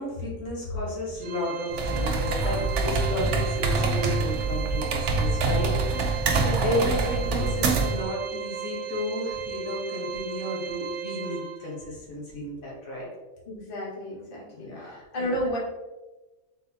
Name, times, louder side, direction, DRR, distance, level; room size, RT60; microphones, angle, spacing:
voice 1, 0.0-13.1 14.5-14.9 15.2-15.4, left 1 dB, 70° left, -4 dB, 1.5 m, -33 dB
Organ, 1.2-11.9, right 9 dB, 90° right, 1.1 m, -35 dB
sound 1, 1.7-8.0, right 3 dB, 65° right, 0.9 m, -26 dB
voice 2, 6.4-6.9 7.2-7.5 13.5-15.6, equal, 40° left, -5 dB, 1.3 m, -33 dB
4.0 x 3.8 x 2.8 m, 1.1 s
omnidirectional pair, 1.5 m